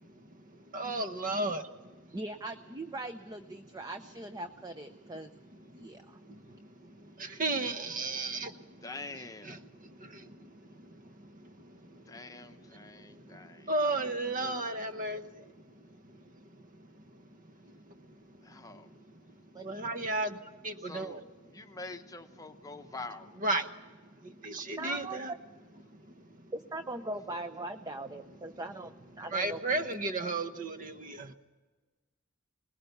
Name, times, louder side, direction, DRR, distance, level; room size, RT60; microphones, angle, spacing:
voice 1, 0.7-1.7 7.2-8.6 9.4-10.5 13.6-15.4 19.6-21.2 23.4-23.7 24.2-25.3 29.3-31.3, right 2 dB, 40° right, 8 dB, 1.1 m, -33 dB
voice 2, 2.1-5.3 5.8-6.2 19.5-19.6 24.8-25.4 26.5-28.9 29.2-29.6, right 2 dB, 20° right, 8 dB, 0.6 m, -40 dB
voice 3, 8.8-9.6 12.1-13.6 14.4-14.6 18.5-18.9 20.9-21.2 21.5-23.3, left 3 dB, 15° left, 7 dB, 0.9 m, -45 dB
21.0 x 19.5 x 6.7 m, 1.3 s
head